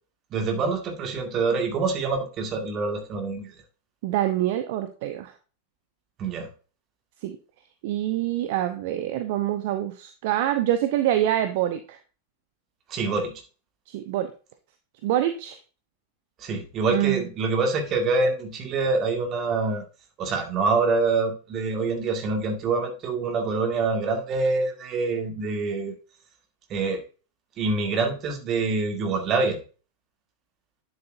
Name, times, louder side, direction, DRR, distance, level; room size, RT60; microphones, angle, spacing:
voice 1, 0.3-3.5 6.2-6.5 12.9-13.3 16.4-19.8 20.2-25.9 26.7-27.0 27.6-29.6, right 3 dB, 30° right, 4 dB, 2.0 m, -25 dB
voice 2, 4.0-5.3 7.2-7.4 7.8-12.0 13.9-14.3 15.0-15.6 16.9-17.3, right 12 dB, 50° right, 8 dB, 0.7 m, -25 dB
9.6 x 7.8 x 2.6 m, 0.36 s
figure-of-eight pair, 90°, 0 cm